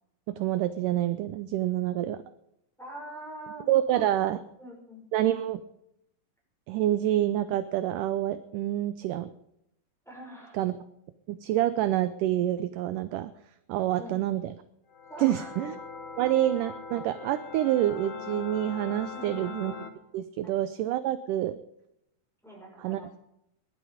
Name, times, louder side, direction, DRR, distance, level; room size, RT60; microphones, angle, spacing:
voice 1, 0.3-2.2 3.7-4.4 5.1-5.6 6.7-9.3 10.5-10.8 11.3-13.3 13.7-14.4 15.2-15.8 16.2-19.7 20.1-21.6 22.8-23.0, right 13 dB, 75° right, 12 dB, 2.1 m, -27 dB
voice 2, 2.8-3.7 3.9-4.0 4.6-5.0 10.0-10.6 14.0-14.2 15.1-15.5 19.1-19.6 20.4-20.5 22.4-23.1, right 1 dB, ahead, -3 dB, 6.0 m, -44 dB
sound 1, 14.9-19.9, left 6 dB, 60° left, 1.3 m, -41 dB
19.5 x 12.0 x 5.1 m, 0.80 s
omnidirectional pair, 4.1 m